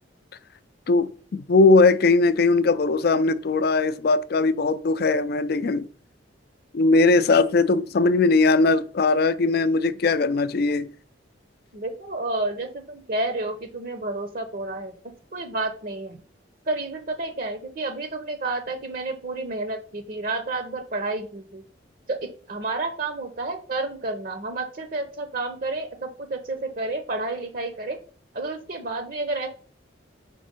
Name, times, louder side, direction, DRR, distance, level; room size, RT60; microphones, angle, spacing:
voice 1, 0.9-5.9 6.7-10.9, left 3 dB, 55° left, 0.4 m, -20 dB
voice 2, 11.7-16.2 16.7-21.6 22.1-28.0 28.3-29.5, right 2 dB, 50° right, 0.7 m, -30 dB
5.1 x 4.2 x 5.2 m
head